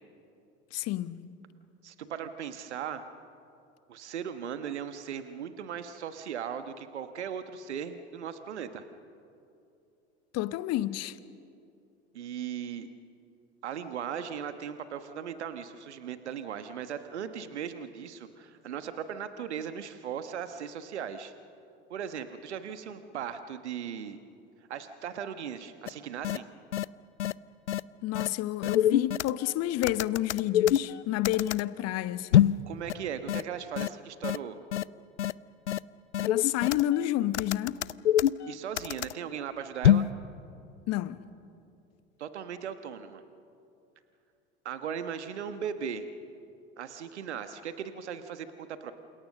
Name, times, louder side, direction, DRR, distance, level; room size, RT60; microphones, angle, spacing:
voice 1, 0.7-1.2 10.3-11.2 28.0-32.6 36.2-37.8 40.9-41.2, left 14 dB, 50° left, 1.2 m, -30 dB
voice 2, 1.8-3.0 3.9-8.8 12.1-12.9 13.6-21.3 21.9-24.2 24.7-26.5 32.6-34.7 38.5-40.1 42.2-43.2 44.6-46.0 46.8-48.9, right 8 dB, 80° right, 1.4 m, -38 dB
sound 1, 25.9-26.0 26.2-26.4 26.7-26.8 27.2-27.3 27.7-27.8 28.1-28.3 28.6-29.5 29.8-31.6 32.3-32.6 32.9-33.0 33.3-33.4 33.8-33.9 34.2-34.4 34.7-34.8 35.2-35.3 35.7-35.8 36.1-37.0 37.3-39.1 39.8-40.1, left 11 dB, 85° left, 0.6 m, -24 dB
29.0 x 27.5 x 6.6 m
figure-of-eight pair, 75°, 34 cm